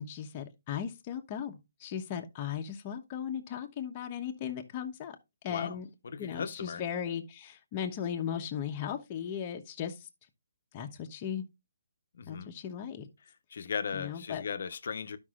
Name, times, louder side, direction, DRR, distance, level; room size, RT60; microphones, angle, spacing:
voice 1, 0.0-5.2 5.4-5.9 6.2-10.1 10.7-11.5 12.3-13.1 13.9-14.4, left 8 dB, 25° left, 1.0 m, -37 dB
voice 2, 6.0-6.8 12.2-12.5 13.5-15.2, left 6 dB, 60° left, 0.9 m, -37 dB
13.0 x 5.4 x 2.5 m
hypercardioid pair, 160°, 0 cm